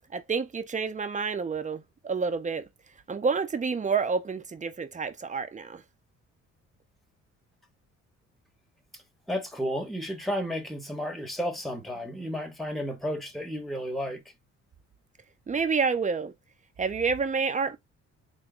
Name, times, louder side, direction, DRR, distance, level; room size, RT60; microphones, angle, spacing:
voice 1, 0.1-2.6 3.1-5.8 15.5-16.3 16.8-17.8, right 5 dB, 25° right, 0.7 m, -28 dB
voice 2, 9.3-14.2, equal, ahead, 1.5 m, -32 dB
3.7 x 2.3 x 3.7 m
cardioid pair, 90°, 30 cm